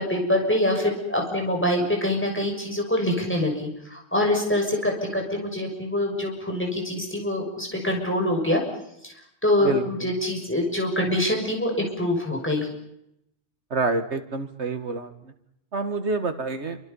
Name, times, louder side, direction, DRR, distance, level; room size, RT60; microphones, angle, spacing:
voice 1, 0.0-8.6 9.0-9.1 9.4-12.7, left 1 dB, 10° left, 1 dB, 6.7 m, -25 dB
voice 2, 13.7-15.3 15.7-16.8, right 3 dB, 80° right, 8 dB, 2.2 m, -27 dB
28.0 x 25.5 x 5.6 m, 0.78 s
omnidirectional pair, 1.1 m